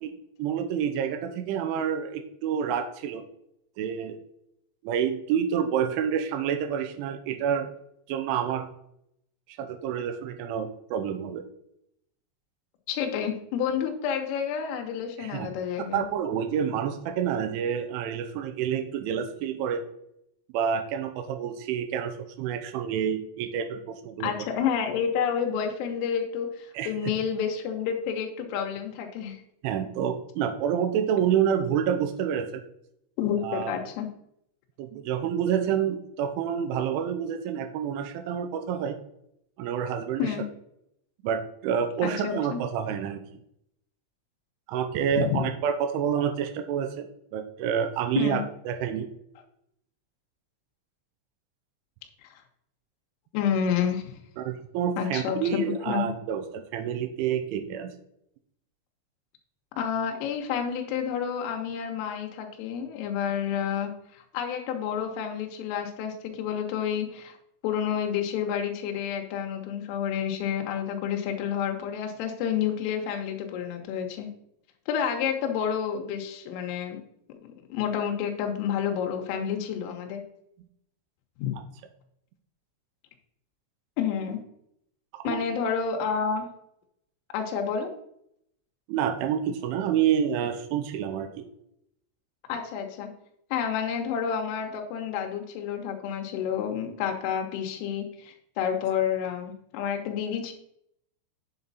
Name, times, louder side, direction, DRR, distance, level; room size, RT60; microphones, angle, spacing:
voice 1, 0.4-3.2 3.8-4.2 4.8-7.7 8.1-8.7 9.5-11.4 15.2-15.5 15.9-19.8 20.5-24.3 26.7-26.9 29.6-32.6 33.4-33.7 34.8-39.0 39.6-40.3 41.2-43.2 44.7-47.1 47.3-49.1 54.4-57.9 85.1-85.5 88.9-91.5, right 8 dB, 80° right, 8 dB, 3.0 m, -28 dB
voice 2, 12.9-16.0 24.2-29.4 33.2-34.1 40.2-40.4 42.0-42.6 45.1-45.4 48.2-48.4 52.3-52.4 53.3-54.2 55.0-56.1 59.8-67.4 67.6-74.3 74.9-77.0 77.4-80.2 81.4-81.6 84.0-84.4 85.3-86.5 87.3-87.9 92.5-93.1 93.5-100.5, left 8 dB, 80° left, 3 dB, 3.5 m, -29 dB
8.8 x 7.1 x 4.0 m, 0.76 s
omnidirectional pair, 5.9 m